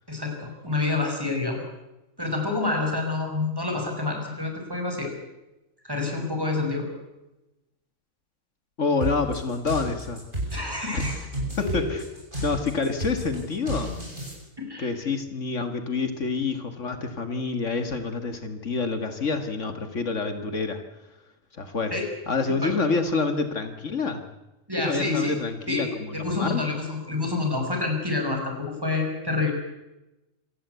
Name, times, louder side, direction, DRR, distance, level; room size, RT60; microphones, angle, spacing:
voice 1, 0.1-1.6 2.2-5.1 5.8-6.9 10.5-11.1 11.6-11.8 14.6-14.9 21.9-22.1 22.6-22.7 24.7-25.3 25.7-29.5, left 3 dB, 15° right, 2 dB, 6.0 m, -28 dB
voice 2, 8.8-10.2 10.9-11.1 11.6-12.0 12.4-13.9 14.8-20.8 21.6-21.9 22.3-24.2 24.8-26.6, left 4 dB, 65° left, 8 dB, 2.2 m, -27 dB
sound 1, 9.0-14.3, right 1 dB, 40° right, 8.0 m, -32 dB
27.0 x 18.0 x 8.2 m, 0.99 s
omnidirectional pair, 1.4 m